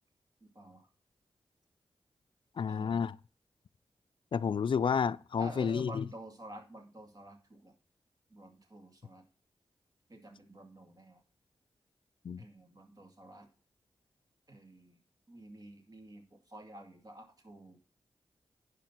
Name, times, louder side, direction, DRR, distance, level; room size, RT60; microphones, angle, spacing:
voice 1, 0.4-0.9 2.7-3.1 5.4-7.7 8.3-9.3 10.1-11.2 12.4-13.5 14.5-15.0 15.3-17.8, right 1 dB, 40° right, 2.4 m, -50 dB
voice 2, 2.6-3.1 4.3-6.0 12.2-12.4, left 6 dB, 60° left, 0.4 m, -30 dB
10.5 x 5.0 x 6.0 m
cardioid pair, 55°, 10 cm